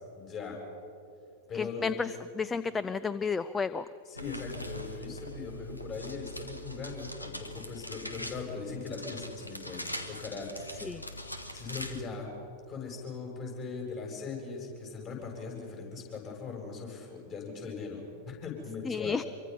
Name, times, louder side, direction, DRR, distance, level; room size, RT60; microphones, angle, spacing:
voice 1, 0.1-0.6 1.5-1.8 4.1-11.0 11.5-12.3 12.7-19.2, left 5 dB, 35° left, 0 dB, 7.2 m, -40 dB
voice 2, 1.5-3.9 10.8-11.0 18.8-19.3, left 5 dB, 15° left, 15 dB, 0.5 m, -32 dB
sound 1, 4.2-12.0, equal, 85° left, 1.5 m, -42 dB
26.5 x 24.0 x 5.7 m, 2.6 s
figure-of-eight pair, 90°, 0 cm